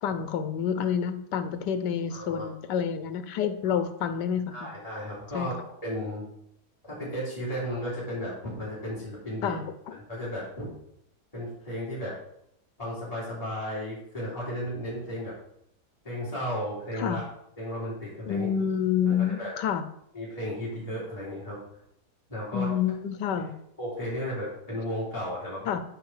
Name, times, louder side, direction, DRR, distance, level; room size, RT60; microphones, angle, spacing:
voice 1, 0.0-4.7 5.3-5.5 9.4-9.9 17.0-17.2 18.2-19.8 22.5-23.5 25.7-25.8, left 8 dB, 90° left, 11 dB, 1.3 m, -28 dB
voice 2, 2.1-2.4 3.6-3.8 4.5-5.5 5.8-6.2 6.9-9.6 9.9-10.7 11.3-12.1 12.8-15.3 16.0-17.2 17.6-18.5 19.0-19.5 20.1-21.6 22.3-22.7 23.8-25.7, equal, 20° left, -8 dB, 3.5 m, -34 dB
7.8 x 5.3 x 4.8 m, 0.75 s
omnidirectional pair, 1.8 m